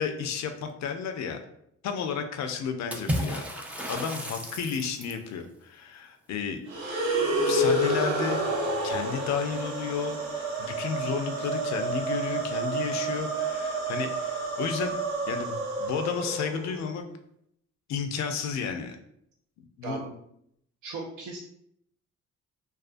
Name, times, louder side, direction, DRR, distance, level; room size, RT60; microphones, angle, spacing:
voice 1, 0.0-1.4 1.8-3.4 3.9-6.6 7.4-8.4 8.8-10.2 10.6-15.0 15.3-17.0 17.9-19.0 19.6-20.0, left 6 dB, 65° left, 6 dB, 0.4 m, -32 dB
Water / Splash splatter, 2.9-5.3, equal, 5° right, 0.4 m, -33 dB
sound 1, 6.7-16.9, right 2 dB, 85° right, 0.9 m, -29 dB
voice 2, 19.8-20.2 20.8-21.4, right 4 dB, 70° right, -1 dB, 0.5 m, -37 dB
2.4 x 2.3 x 2.4 m, 0.73 s
cardioid pair, 90°, 30 cm